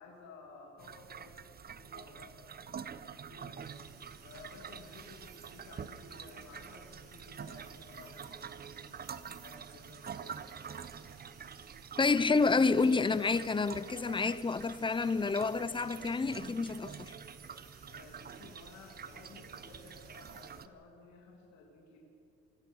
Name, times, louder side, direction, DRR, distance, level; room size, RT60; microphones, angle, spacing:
voice 1, 0.0-1.4 1.7-2.4 2.7-3.6 4.2-10.5 17.8-22.0, left 3 dB, 65° left, 2.9 m, -55 dB
sound 1, 0.8-20.7, right 7 dB, 30° right, 0.9 m, -47 dB
sound 2, 3.6-20.5, right 4 dB, 55° right, 6.7 m, -61 dB
voice 2, 12.0-17.1, left 4 dB, 15° left, 0.7 m, -29 dB
24.5 x 16.5 x 6.4 m
supercardioid pair, 90°, 30 cm